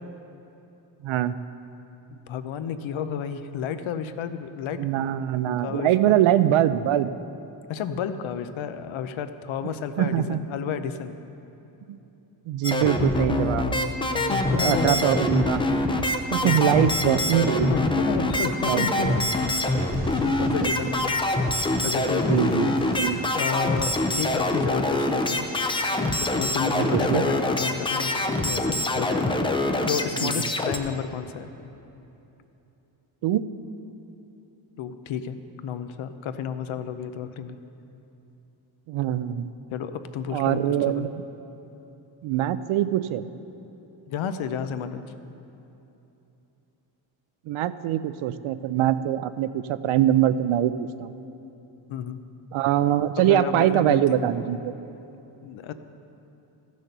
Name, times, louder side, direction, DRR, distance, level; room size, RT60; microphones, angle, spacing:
voice 1, 1.0-1.4 4.8-7.1 10.0-10.4 11.9-12.0 12.5-13.8 14.5-15.9 16.3-17.7 18.7-19.3 19.7-19.9 22.3-23.2 26.7-27.2 30.2-30.5 33.2-33.4 38.9-39.5 40.3-41.2 42.2-43.2 47.5-51.2 52.5-54.7, right 12 dB, 90° right, 13 dB, 0.6 m, -23 dB
voice 2, 2.1-4.8 5.6-6.2 7.7-11.1 13.7-15.0 16.4-17.0 17.7-19.1 19.4-19.5 19.8-21.2 21.8-25.5 26.1-29.4 29.9-31.5 34.8-37.6 39.7-40.6 40.9-41.1 44.1-45.2 51.9-52.2 53.2-54.3 55.4-55.7, left 7 dB, 75° left, 10 dB, 0.7 m, -31 dB
sound 1, 12.6-30.8, left 1 dB, 10° left, 0.4 m, -25 dB
sound 2, 19.1-28.6, right 3 dB, 60° right, 1.5 m, -44 dB
14.5 x 6.4 x 6.7 m, 2.9 s
wide cardioid pair, 165°, 47 cm